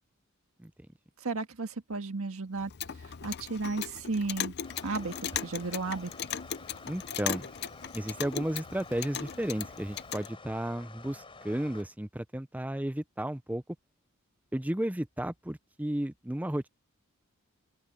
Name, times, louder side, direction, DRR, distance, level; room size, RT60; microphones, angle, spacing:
voice 1, 1.2-2.7 3.0-4.5 4.8-5.1 5.4-6.3, right 3 dB, 80° right, 1.6 m, -34 dB
Clock, 2.6-10.3, left 9 dB, 50° left, 0.6 m, -38 dB
sound 1, 4.6-11.8, left 3 dB, 25° left, 5.0 m, -50 dB
voice 2, 6.8-7.5 7.9-13.6 14.5-16.7, right 1 dB, 5° right, 0.6 m, -33 dB
open air
head